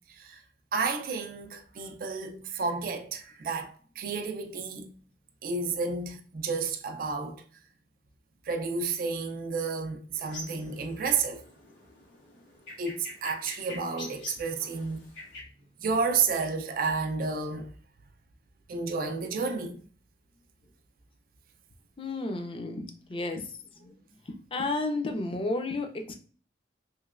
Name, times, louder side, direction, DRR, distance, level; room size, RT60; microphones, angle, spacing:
voice 1, 0.1-0.4 0.7-4.9 5.4-7.4 8.5-11.4 12.8-15.0 15.8-17.7 18.7-19.8, right 4 dB, 50° right, 0.4 m, -31 dB
sound 1, 10.2-15.4, left 1 dB, 85° left, 1.5 m, -45 dB
voice 2, 22.0-23.5 23.8-23.9 24.5-26.1, left 2 dB, 30° left, 0.4 m, -32 dB
3.0 x 2.9 x 2.4 m
head